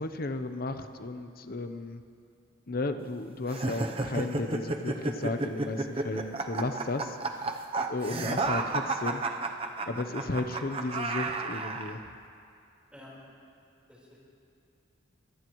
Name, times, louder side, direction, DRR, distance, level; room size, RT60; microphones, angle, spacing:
voice 1, 0.0-2.0 2.7-7.5 7.9-9.2 9.9-12.0, left 2 dB, 45° left, 8 dB, 0.8 m, -34 dB
sound 1, 3.5-11.9, right 3 dB, 30° right, 0.7 m, -32 dB
voice 2, 10.3-10.7 12.9-13.1 13.9-14.2, left 1 dB, 5° right, -6 dB, 4.2 m, -52 dB
23.0 x 17.5 x 3.1 m, 2.5 s
head